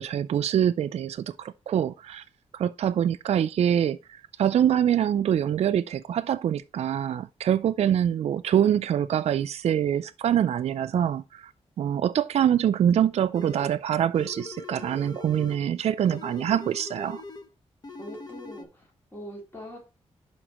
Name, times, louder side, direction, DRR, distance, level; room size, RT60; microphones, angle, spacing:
voice 1, 0.0-2.2 2.5-11.5 11.8-17.2, right 9 dB, 65° right, 0.4 m, -25 dB
sound 1, 13.3-13.8 14.1-15.7 16.0-17.5 17.8-18.6, left 3 dB, 35° left, 0.9 m, -41 dB
voice 2, 18.0-19.8, equal, 20° left, 2.6 m, -42 dB
11.0 x 4.3 x 3.0 m
wide cardioid pair, 115°, 12 cm